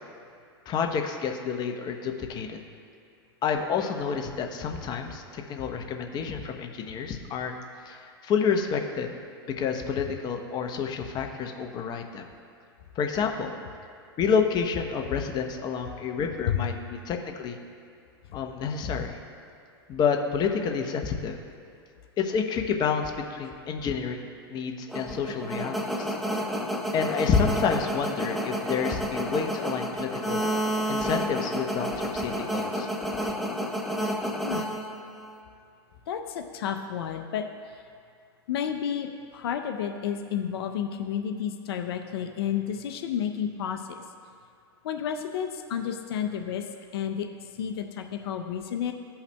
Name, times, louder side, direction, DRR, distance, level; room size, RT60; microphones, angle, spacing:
voice 1, 0.7-2.6 3.4-7.5 7.9-9.1 9.6-12.2 13.0-13.5 14.2-17.6 18.3-19.2 19.9-21.3 22.2-26.1 26.9-30.4 30.9-32.9, left 6 dB, 35° left, 4 dB, 0.8 m, -29 dB
sound 1, 24.9-35.4, equal, ahead, 0.7 m, -30 dB
voice 2, 34.4-34.7 36.1-37.8 38.5-44.1 44.8-48.9, left 8 dB, 70° left, 4 dB, 0.6 m, -31 dB
16.5 x 5.7 x 2.2 m, 2.3 s
hypercardioid pair, 115°, 13 cm